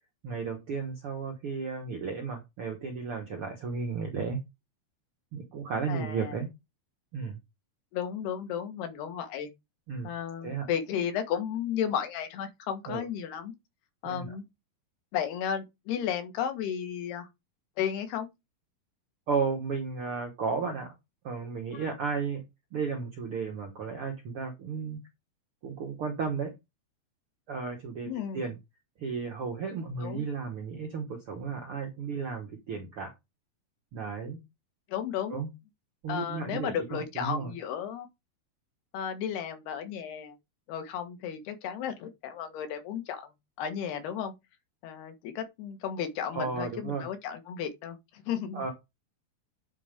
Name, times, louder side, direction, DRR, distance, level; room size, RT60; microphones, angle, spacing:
voice 1, 0.2-4.4 5.3-6.5 7.1-7.4 9.9-10.1 10.4-10.6 12.9-13.1 14.0-14.3 19.3-20.9 21.2-22.4 22.7-25.0 25.6-26.5 27.5-28.6 29.0-33.1 33.9-34.4 35.3-35.5 36.0-37.5 46.3-47.1 48.5-48.7, right 5 dB, 65° right, 1.3 m, -34 dB
voice 2, 5.9-6.4 7.9-9.5 10.0-13.5 14.0-14.4 15.1-17.3 17.8-18.3 21.7-21.9 28.1-28.4 30.0-30.2 34.9-35.4 36.1-38.1 38.9-40.4 40.7-43.2 43.6-44.3 44.8-48.6, left 8 dB, 90° left, 3.6 m, -34 dB
9.3 x 4.3 x 5.1 m
omnidirectional pair, 4.4 m